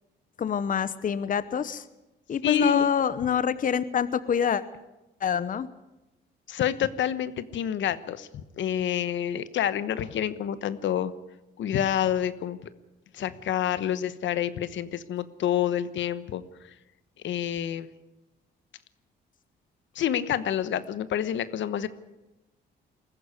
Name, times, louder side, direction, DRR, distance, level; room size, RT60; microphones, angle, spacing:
voice 1, 0.4-1.8 2.3-4.6 5.2-5.7, left 7 dB, 45° left, 14 dB, 0.9 m, -26 dB
voice 2, 2.4-2.9 6.5-8.3 8.6-11.1 11.6-12.6 13.1-16.4 17.2-17.9 19.9-21.9, left 10 dB, 70° left, 14 dB, 1.1 m, -28 dB
21.0 x 15.0 x 9.7 m, 1.0 s
cardioid pair, 90°, 20 cm